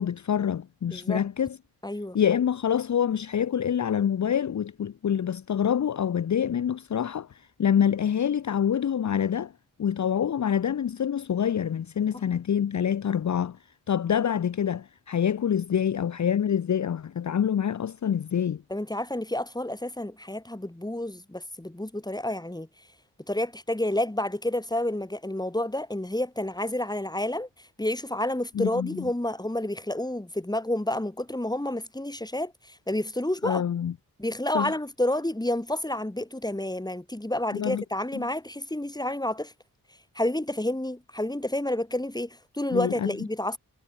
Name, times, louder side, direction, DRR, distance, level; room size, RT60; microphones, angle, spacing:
voice 1, 0.0-1.6 2.1-9.5 9.8-13.6 13.9-18.6 28.5-29.1 33.4-33.9 34.5-34.8 37.5-37.8 38.1-38.3 42.7-43.1, left 8 dB, 55° left, 0.7 m, -26 dB
voice 2, 0.9-1.2 1.8-2.2 18.7-22.7 23.3-27.5 27.8-33.6 34.2-39.5 40.1-43.6, left 1 dB, 10° left, 5.2 m, -29 dB
cardioid pair, 70°, 35 cm